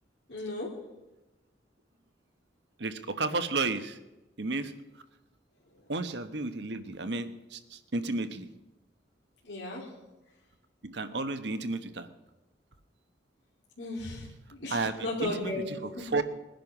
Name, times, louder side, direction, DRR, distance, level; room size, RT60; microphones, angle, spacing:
voice 1, 0.3-0.7 9.4-9.9 13.8-14.3 14.5-16.1, left 2 dB, 85° left, -3 dB, 2.9 m, -35 dB
voice 2, 2.8-4.0 4.4-4.7 5.9-8.5 10.8-12.1 14.7-16.2, right 3 dB, 75° right, 10 dB, 1.1 m, -32 dB
21.0 x 10.5 x 6.0 m, 1.1 s
head